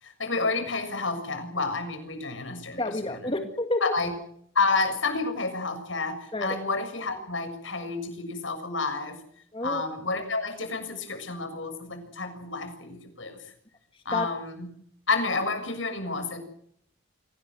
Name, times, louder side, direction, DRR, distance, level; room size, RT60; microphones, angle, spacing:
voice 1, 0.0-2.9 3.8-4.1 4.6-9.2 9.6-13.4 14.1-14.7 15.1-16.4, left 3 dB, 75° left, 7 dB, 6.9 m, -30 dB
voice 2, 2.8-3.9 6.3-6.6 9.5-9.8 14.1-14.3, left 2 dB, 25° left, 6 dB, 2.1 m, -29 dB
26.0 x 19.0 x 7.8 m, 0.68 s
head